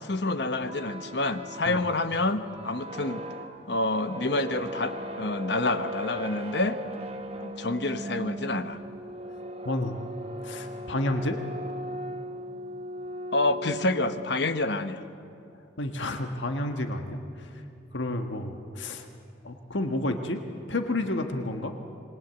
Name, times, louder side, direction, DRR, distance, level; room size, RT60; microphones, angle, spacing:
voice 1, 0.0-3.2 3.7-6.8 7.4-8.8 13.3-15.0, left 2 dB, 65° left, 10 dB, 1.1 m, -28 dB
sound 1, 0.6-14.3, right 1 dB, 30° right, 1.2 m, -38 dB
voice 2, 9.6-10.0 10.4-11.4 15.8-17.6 17.9-19.1 19.4-20.4 20.7-21.7, left 1 dB, 80° left, 5 dB, 1.5 m, -30 dB
27.0 x 21.0 x 8.2 m, 2.6 s
head